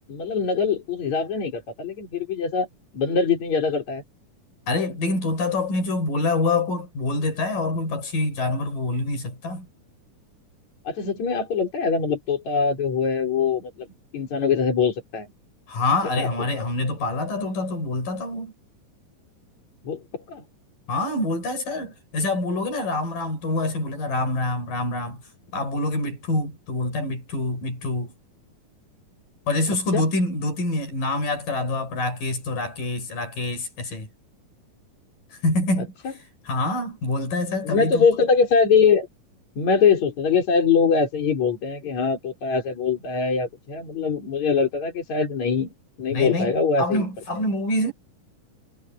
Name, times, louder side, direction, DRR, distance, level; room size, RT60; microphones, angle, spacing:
voice 1, 0.1-2.7 2.9-4.0 10.8-13.9 14.1-15.3 16.2-16.3 19.8-20.0 20.3-20.4 29.9-30.0 37.6-39.1 39.6-45.7 46.0-47.0, left 5 dB, 55° left, 6.0 m, -22 dB
voice 2, 4.7-9.7 15.7-18.5 20.9-25.2 25.5-28.1 29.5-34.1 35.4-35.9 36.5-38.1 46.1-47.9, left 2 dB, 75° left, 8.2 m, -26 dB
omnidirectional pair, 3.8 m